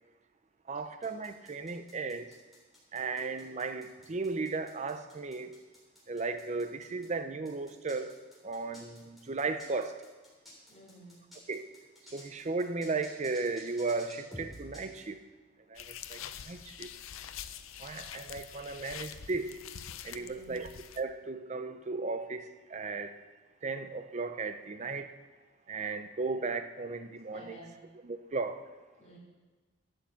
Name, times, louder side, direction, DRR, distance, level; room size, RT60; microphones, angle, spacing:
voice 1, 0.7-2.4 2.9-5.6 6.1-8.2 8.4-10.0 11.5-11.7 12.1-15.2 15.7-16.9 17.8-19.6 20.0-20.7 21.0-23.1 23.6-25.1 25.7-27.6 28.0-28.6, right 3 dB, 35° right, 9 dB, 0.5 m, -35 dB
Tic Tac Drum Beat Loop, 1.0-7.1 7.5-15.0, left 1 dB, ahead, 3.4 m, -52 dB
voice 2, 10.7-11.3 17.5-17.6 20.1-20.6 27.3-27.8 29.0-29.2, right 1 dB, 30° left, -12 dB, 3.1 m, -52 dB
sound 1, 15.7-21.0, left 9 dB, 85° left, 0.6 m, -45 dB
12.0 x 6.6 x 7.1 m, 1.3 s
head